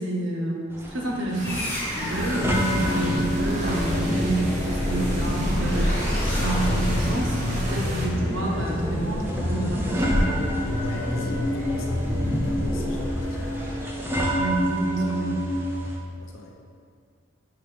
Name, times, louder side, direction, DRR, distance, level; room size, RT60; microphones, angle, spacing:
voice 1, 0.0-1.6 2.0-5.9 6.4-10.4 14.3-15.4, right 2 dB, 70° right, 0 dB, 1.0 m, -28 dB
sound 1, 0.7-16.0, equal, 10° right, 0.5 m, -30 dB
sound 2, 1.1-8.1, right 1 dB, 35° right, 0.9 m, -34 dB
sound 3, 1.4-14.0, left 1 dB, 10° left, 1.2 m, -28 dB
voice 2, 10.8-13.5 16.2-16.6, left 1 dB, 80° left, 1 dB, 0.8 m, -40 dB
5.3 x 5.0 x 4.8 m, 2.1 s
head